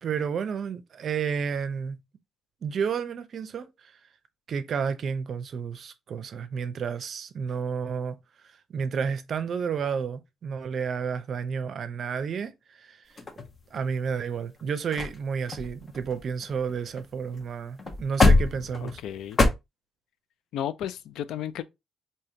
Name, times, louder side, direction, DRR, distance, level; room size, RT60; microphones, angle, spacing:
voice 1, 0.0-2.0 2.6-4.0 4.5-8.2 8.7-13.0 13.7-19.0, right 6 dB, 55° right, 0.5 m, -31 dB
sound 1, 13.2-14.0 14.6-14.7 14.9-15.2 15.5-17.1 17.3-17.5 17.8-19.5, left 3 dB, 40° left, 0.7 m, -25 dB
voice 2, 18.8-19.4 20.5-21.6, left 10 dB, 80° left, 0.3 m, -33 dB
3.5 x 2.7 x 2.7 m
cardioid pair, 90°, 0 cm